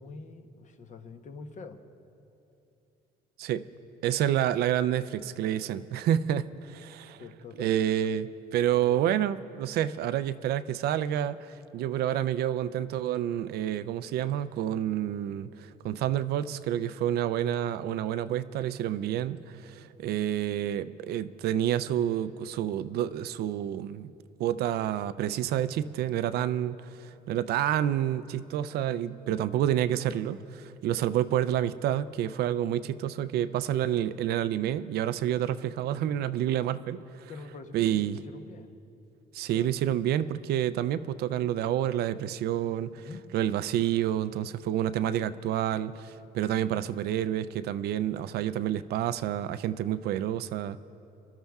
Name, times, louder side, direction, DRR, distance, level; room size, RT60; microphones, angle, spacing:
voice 1, 0.0-1.8 7.2-7.8 29.3-29.4 37.3-38.7 39.4-39.7 42.9-43.2, left 4 dB, 45° left, 7 dB, 0.9 m, -45 dB
voice 2, 4.0-6.4 6.8-7.2 7.6-24.1 24.4-37.3 37.7-38.2 39.3-43.1 43.3-50.8, right 11 dB, 70° right, 14 dB, 0.4 m, -29 dB
27.5 x 12.5 x 2.3 m, 2.8 s
cardioid pair, 110°, 17 cm